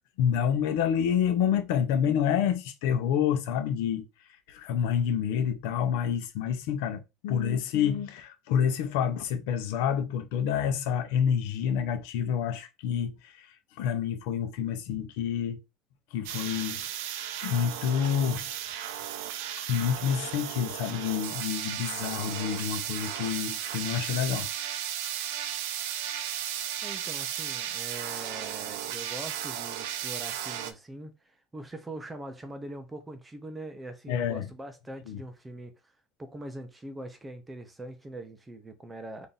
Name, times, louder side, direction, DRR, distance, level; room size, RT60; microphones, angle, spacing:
voice 1, 0.2-4.0 4.5-13.5 13.8-15.6 16.1-18.5 19.6-24.5 34.1-34.5 35.1-35.2, left 8 dB, 75° left, 0.7 m, -28 dB
sound 1, 16.2-30.7, right 10 dB, 90° right, 0.6 m, -35 dB
voice 2, 26.8-35.9 36.2-39.3, right 1 dB, 10° right, 0.6 m, -42 dB
3.5 x 2.6 x 4.0 m
cardioid pair, 165°, 0 cm